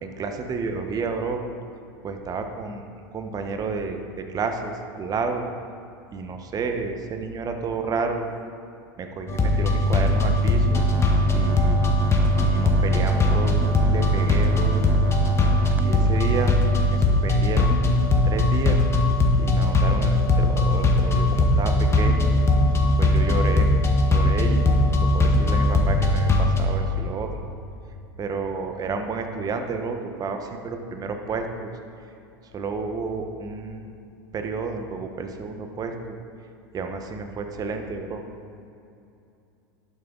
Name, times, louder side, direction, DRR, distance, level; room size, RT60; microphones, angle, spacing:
voice 1, 0.0-1.4 2.0-5.4 6.1-8.4 9.0-10.8 11.3-11.8 12.3-14.9 15.8-16.6 16.9-17.8 18.2-18.8 19.4-22.3 23.0-23.7 24.1-24.7 25.1-27.3 28.2-31.7 32.5-33.9 34.3-36.2 36.7-38.2, right 4 dB, 30° right, 5 dB, 1.2 m, -30 dB
sound 1, 9.3-26.6, left 1 dB, 20° left, 1.5 m, -20 dB
sound 2, 10.7-16.6, right 4 dB, 15° right, 0.4 m, -35 dB
12.0 x 8.3 x 4.0 m, 2.6 s
hypercardioid pair, 100°, 12 cm